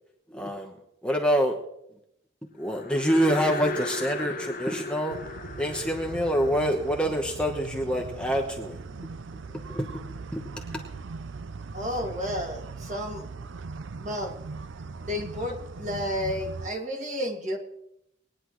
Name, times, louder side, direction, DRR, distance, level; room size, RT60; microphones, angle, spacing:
voice 1, 0.3-0.7 1.0-1.6 2.6-5.2 5.6-8.8 9.7-10.8, equal, 5° left, 1 dB, 1.0 m, -26 dB
sound 1, 2.6-8.1, left 3 dB, 45° left, 0.9 m, -37 dB
sound 2, 5.1-16.7, right 4 dB, 75° right, 0.5 m, -40 dB
voice 2, 11.7-13.3 14.0-14.4 15.0-17.6, left 1 dB, 40° right, 1 dB, 2.0 m, -32 dB
20.5 x 9.9 x 3.1 m, 0.77 s
head